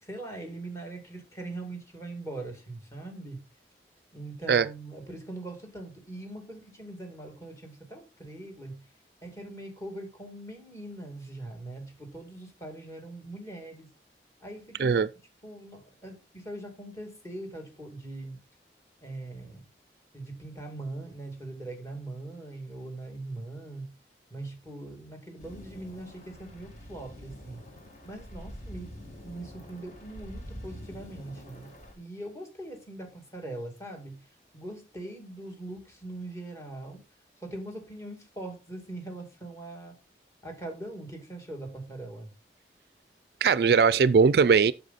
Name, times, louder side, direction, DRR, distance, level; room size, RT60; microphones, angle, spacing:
voice 1, 0.0-3.4 4.1-8.9 9.2-13.9 14.4-15.0 15.4-18.4 19.0-19.7 20.1-23.9 24.3-27.6 28.0-28.9 29.2-37.0 37.4-39.9 40.4-42.3, right 2 dB, 15° left, 2.3 m, -41 dB
sound 1, 25.4-31.9, equal, 40° left, 2.4 m, -45 dB
voice 2, 43.4-44.7, right 5 dB, 65° right, 0.3 m, -20 dB
7.9 x 6.2 x 4.1 m
head